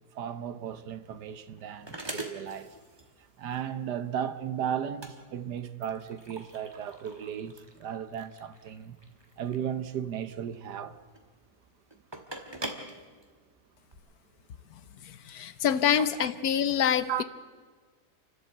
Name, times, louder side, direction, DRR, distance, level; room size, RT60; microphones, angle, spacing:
voice 1, 0.1-2.8 3.4-9.0 9.4-11.0 16.0-16.1 17.1-17.2, right 9 dB, 80° right, 1.5 m, -35 dB
sound 1, 0.6-13.9, right 1 dB, 15° right, 1.8 m, -45 dB
voice 2, 15.0-17.2, left 8 dB, 65° left, 1.3 m, -26 dB
28.5 x 12.5 x 8.0 m
omnidirectional pair, 1.8 m